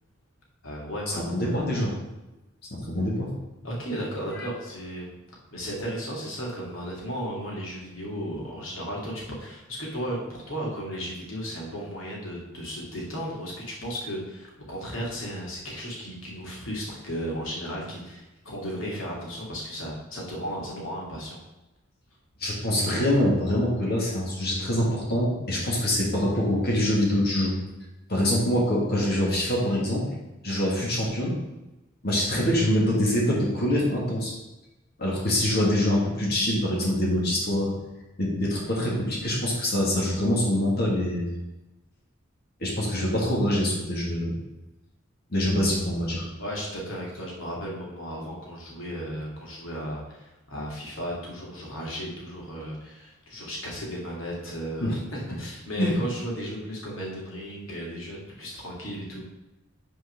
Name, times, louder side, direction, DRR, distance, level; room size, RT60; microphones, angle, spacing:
voice 1, 0.6-1.2 3.6-5.2 5.5-21.4 46.4-59.2, equal, 85° left, -3 dB, 2.4 m, -35 dB
voice 2, 1.3-1.9 2.7-3.3 22.4-27.5 28.1-30.0 30.4-31.4 32.0-34.3 35.0-37.7 38.2-41.3 42.6-44.4 45.3-46.2 54.8-54.9 55.8-55.9, left 1 dB, 55° left, -3 dB, 2.0 m, -24 dB
6.3 x 4.5 x 5.9 m, 1.0 s
head